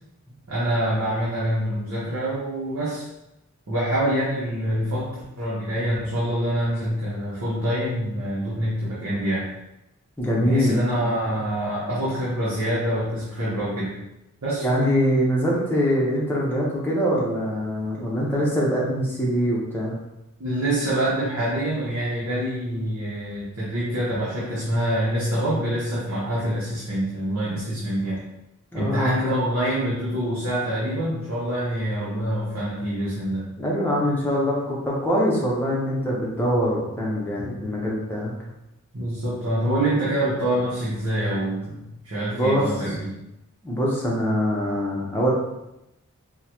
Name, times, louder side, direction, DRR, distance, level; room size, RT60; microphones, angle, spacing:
voice 1, 0.5-3.1 3.7-9.5 10.4-13.9 14.4-14.7 20.4-28.2 28.7-33.5 38.9-43.1, right 1 dB, 65° right, -8 dB, 0.8 m, -26 dB
voice 2, 10.2-10.8 14.6-19.9 28.7-29.2 33.6-38.3 42.3-42.7 43.6-45.3, equal, 10° left, -5 dB, 0.6 m, -23 dB
3.6 x 2.1 x 2.9 m, 0.90 s
head